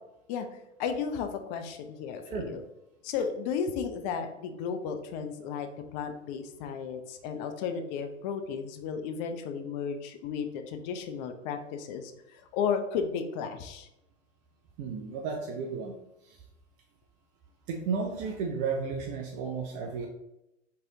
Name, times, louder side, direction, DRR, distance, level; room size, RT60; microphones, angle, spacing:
voice 1, 0.8-2.6 3.0-13.9, left 6 dB, 35° left, 6 dB, 0.5 m, -34 dB
voice 2, 14.8-15.9 16.2-16.4 17.7-20.1, right 5 dB, 20° right, 2 dB, 0.3 m, -33 dB
4.5 x 3.1 x 3.7 m, 0.88 s
figure-of-eight pair, 95°, 38 cm